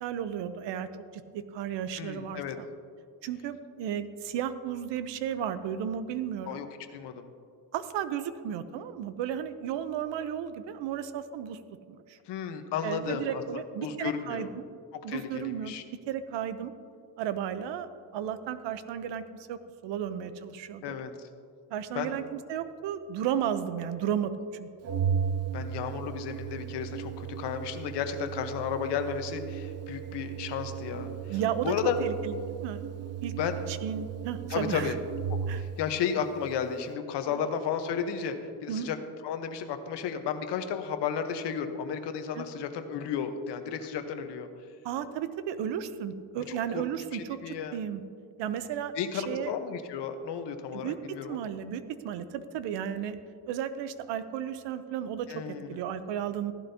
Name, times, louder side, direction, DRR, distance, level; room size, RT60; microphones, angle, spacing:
voice 1, 0.0-0.9 1.1-2.7 3.2-6.6 7.7-11.6 11.9-12.2 12.8-14.6 15.0-15.7 16.1-16.7 17.2-19.2 19.5-21.0 21.7-24.9 31.3-31.7 32.0-32.8 33.2-33.3 33.7-34.9 35.5-35.6 37.3-37.4 38.7-38.9 42.3-42.5 44.8-48.0 48.4-49.5 50.7-51.0 51.3-53.2 53.5-55.3 55.7-56.5, right 9 dB, 80° right, 11 dB, 0.8 m, -34 dB
voice 2, 2.0-2.6 6.5-6.7 6.9-7.3 12.3-13.4 13.8-14.5 15.1-15.8 20.8-21.3 21.9-22.2 25.5-31.1 31.6-32.0 33.4-33.6 34.5-35.0 35.5-38.4 38.6-39.0 39.2-44.5 46.5-46.8 47.1-47.8 48.9-51.4 55.3-55.8, left 7 dB, 70° left, 7 dB, 1.1 m, -33 dB
Organ, 24.8-35.9, right 8 dB, 35° right, 0.5 m, -35 dB
15.5 x 11.5 x 2.8 m, 2.3 s
cardioid pair, 140°, 43 cm